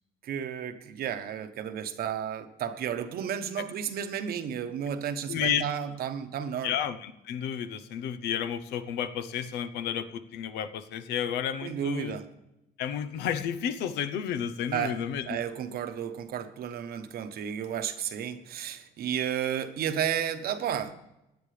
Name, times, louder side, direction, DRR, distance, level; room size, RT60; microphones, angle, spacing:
voice 1, 0.2-6.7 11.6-12.3 14.7-15.0 15.3-20.9, right 8 dB, 65° right, 9 dB, 1.1 m, -32 dB
voice 2, 5.3-5.6 6.6-12.2 12.8-15.4, left 9 dB, 85° left, 11 dB, 0.9 m, -31 dB
17.0 x 9.9 x 3.3 m, 0.89 s
cardioid pair, 110°, 17 cm